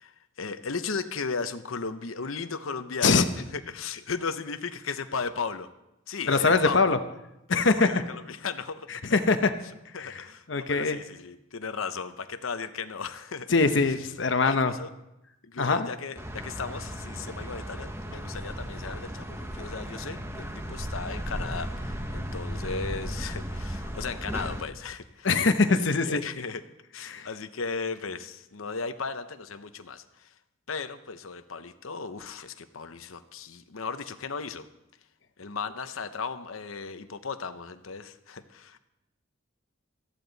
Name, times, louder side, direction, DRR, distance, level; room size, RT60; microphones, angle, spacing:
voice 1, 0.0-3.3 3.5-5.7 6.1-7.0 7.5-8.9 9.9-13.5 14.4-14.9 15.4-25.3 25.7-26.6 26.9-30.3 30.7-34.7 35.4-38.8, left 5 dB, 85° left, 10 dB, 0.9 m, -36 dB
voice 2, 6.3-7.0 7.5-7.9 8.9-9.5 10.0-11.0 13.5-14.7 15.6-15.9 25.2-26.2 27.0-27.3, left 4 dB, 60° left, 9 dB, 0.9 m, -23 dB
sound 1, 16.2-24.6, equal, 15° right, 1.0 m, -35 dB
18.5 x 14.0 x 4.1 m, 0.89 s
head